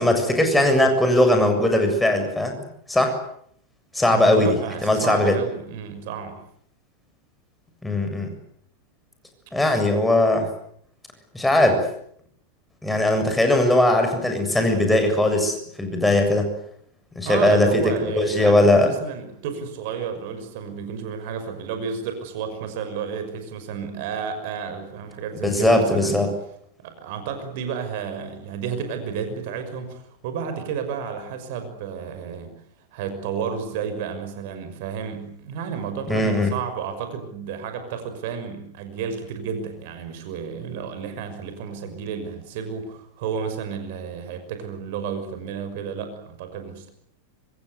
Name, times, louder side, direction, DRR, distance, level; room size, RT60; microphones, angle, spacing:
voice 1, 0.0-3.2 3.9-5.4 7.8-8.3 9.5-10.5 11.3-11.9 12.8-16.5 17.2-18.9 25.4-26.3 36.1-36.5, left 1 dB, 5° left, 5 dB, 7.3 m, -19 dB
voice 2, 4.1-6.4 17.2-26.3 26.8-32.5 32.9-46.9, right 6 dB, 50° right, 8 dB, 6.0 m, -31 dB
26.5 x 25.5 x 8.2 m, 0.67 s
figure-of-eight pair, 90°, 0 cm